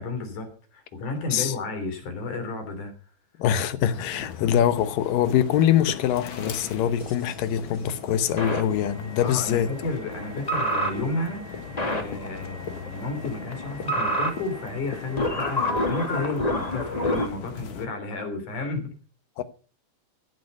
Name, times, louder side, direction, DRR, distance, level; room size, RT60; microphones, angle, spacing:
voice 1, 0.0-2.9 4.4-4.5 9.2-18.9, left 2 dB, 65° left, 4.7 m, -32 dB
voice 2, 3.4-9.7 19.4-19.5, left 10 dB, 85° left, 2.7 m, -23 dB
sound 1, 3.9-17.9, left 6 dB, 45° left, 1.8 m, -39 dB
sound 2, 7.0-7.3 8.4-17.3, equal, 15° left, 1.8 m, -29 dB
15.5 x 11.0 x 5.4 m
omnidirectional pair, 3.8 m